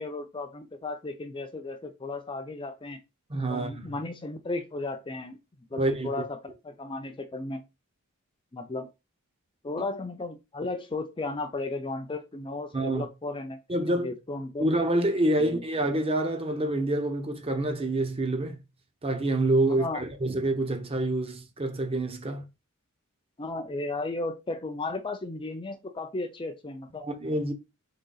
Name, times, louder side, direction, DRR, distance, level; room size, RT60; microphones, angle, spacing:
voice 1, 0.0-3.0 3.5-5.4 5.7-7.6 8.5-8.9 9.6-13.6 14.0-14.7 15.4-15.6 19.8-20.0 23.4-27.0, left 2 dB, 25° left, 0.5 m, -35 dB
voice 2, 3.3-3.9 5.7-6.1 12.7-13.1 13.7-14.1 14.6-18.6 19.0-22.4 27.0-27.5, right 1 dB, 25° right, 0.7 m, -27 dB
3.9 x 3.4 x 3.9 m
head